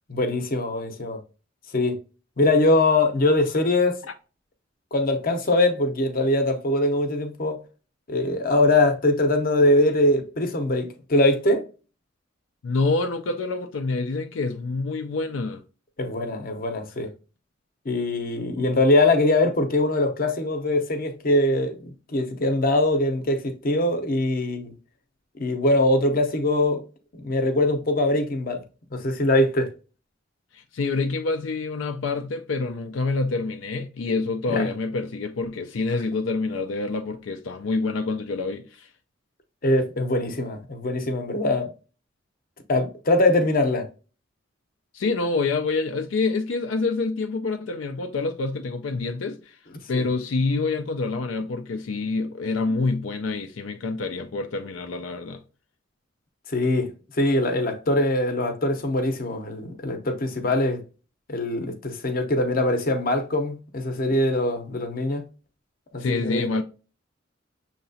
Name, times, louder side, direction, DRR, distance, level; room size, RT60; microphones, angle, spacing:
voice 1, 0.1-1.2 1.7-1.9 2.4-4.0 4.9-7.6 8.1-11.6 16.0-17.1 17.8-24.7 25.4-26.8 27.1-28.6 28.9-29.7 34.5-34.7 39.6-41.7 42.7-43.9 49.9-50.0 56.5-60.8 61.3-65.2 65.9-66.5, left 2 dB, 50° left, 0.8 m, -22 dB
voice 2, 12.6-15.6 30.5-38.9 44.9-49.6 49.9-55.4 66.0-66.6, left 3 dB, 85° left, 0.4 m, -27 dB
6.6 x 2.9 x 2.7 m
head